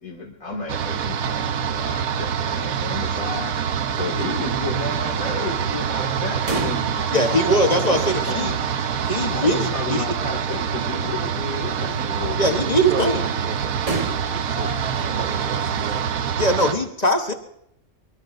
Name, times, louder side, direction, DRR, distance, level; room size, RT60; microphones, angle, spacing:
voice 1, 0.0-8.6 9.2-12.6, left 3 dB, 85° left, -1 dB, 2.6 m, -33 dB
sound 1, 0.7-16.7, right 7 dB, 85° right, 1.3 m, -25 dB
sound 2, 6.4-16.0, right 2 dB, 25° right, 1.2 m, -37 dB
voice 2, 7.1-8.5 9.1-10.1 12.4-13.3 16.4-17.3, equal, 30° left, 5 dB, 1.2 m, -21 dB
voice 3, 12.0-12.4 12.8-13.7 14.3-14.7 15.1-16.0, right 7 dB, 45° right, 10 dB, 0.9 m, -33 dB
24.0 x 23.5 x 2.6 m, 0.77 s
omnidirectional pair, 1.4 m